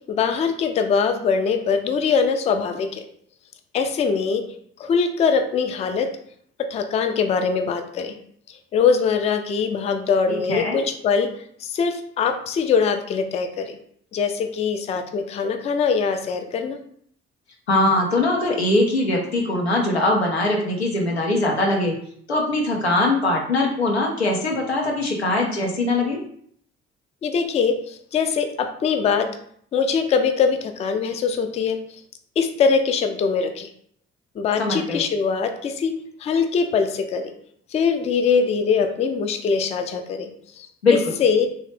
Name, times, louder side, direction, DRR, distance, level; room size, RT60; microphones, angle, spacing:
voice 1, 0.1-3.0 3.7-4.4 4.8-6.1 6.6-8.2 8.5-11.3 11.6-13.8 14.1-16.8 27.2-29.3 29.7-31.8 32.4-33.7 34.4-37.3 37.7-40.3 40.6-40.7 41.2-41.5, left 5 dB, 20° left, 6 dB, 0.3 m, -22 dB
voice 2, 10.3-10.8 17.7-21.9 22.3-26.2 34.6-35.0 40.8-41.1, left 2 dB, 90° left, 0 dB, 0.5 m, -21 dB
3.1 x 2.0 x 3.1 m, 0.63 s
figure-of-eight pair, 45°, 32 cm